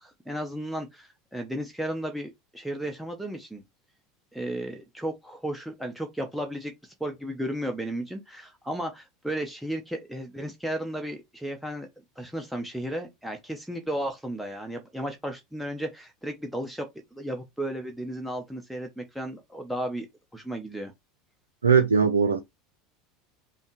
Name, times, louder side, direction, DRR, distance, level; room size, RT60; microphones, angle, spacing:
voice 1, 0.0-3.6 4.3-11.9 12.2-20.1 20.3-20.9, right 1 dB, ahead, 0.9 m, -34 dB
voice 2, 21.6-22.4, right 6 dB, 85° right, 0.4 m, -20 dB
5.4 x 2.2 x 3.2 m
hypercardioid pair, 80°, 0 cm